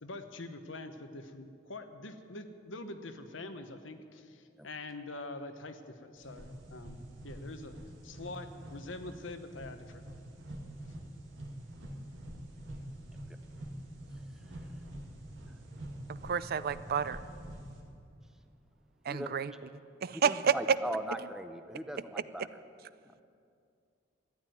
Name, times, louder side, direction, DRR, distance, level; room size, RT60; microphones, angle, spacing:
voice 1, 0.0-7.0 7.2-7.7 8.0-10.0, left 2 dB, 85° left, 8 dB, 1.1 m, -44 dB
sound 1, 6.2-17.8, right 1 dB, 80° right, 2.5 m, -46 dB
voice 2, 16.2-17.2 19.1-19.5 20.0-20.5, right 7 dB, 55° right, 15 dB, 0.4 m, -30 dB
voice 3, 20.1-22.6, right 1 dB, 5° right, 9 dB, 0.6 m, -39 dB
13.5 x 9.6 x 9.4 m, 2.4 s
head